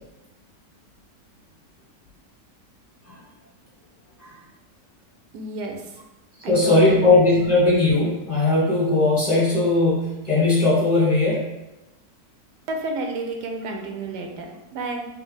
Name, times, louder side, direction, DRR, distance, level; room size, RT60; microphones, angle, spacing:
voice 1, 5.3-6.0 6.4-7.1 12.7-15.1, right 2 dB, 85° right, 2 dB, 1.2 m, -31 dB
voice 2, 6.5-11.5, left 2 dB, 25° left, -7 dB, 1.1 m, -19 dB
3.5 x 2.7 x 3.9 m, 0.99 s
omnidirectional pair, 1.8 m